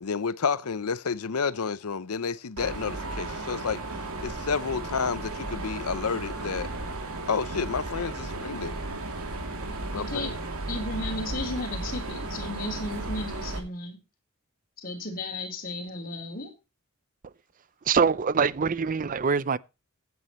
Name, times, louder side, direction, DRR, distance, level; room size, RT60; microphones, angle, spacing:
voice 1, 0.0-3.8 4.2-6.7 7.3-8.7 9.9-10.4, left 5 dB, 90° left, 0.7 m, -30 dB
Mechanisms, 2.6-13.6, right 2 dB, 80° right, 2.7 m, -35 dB
voice 2, 9.9-10.3 10.7-14.0 14.8-16.5, left 2 dB, 40° left, 4.0 m, -34 dB
voice 3, 17.9-19.6, right 5 dB, 40° right, 0.5 m, -24 dB
16.0 x 9.5 x 3.1 m
head